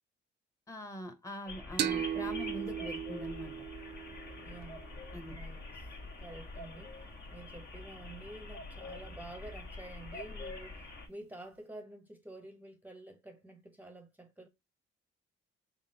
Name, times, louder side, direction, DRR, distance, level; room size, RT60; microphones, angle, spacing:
voice 1, 0.7-3.5 5.1-5.4, left 1 dB, 15° left, 1.0 m, -42 dB
sound 1, 1.5-11.1, left 2 dB, 55° left, 1.4 m, -46 dB
sound 2, 1.8-5.2, right 9 dB, 55° right, 0.6 m, -37 dB
voice 2, 4.4-4.8 5.3-7.1 7.3-14.5, right 2 dB, 10° right, 0.8 m, -50 dB
3.7 x 3.7 x 2.8 m
cardioid pair, 90°, 20 cm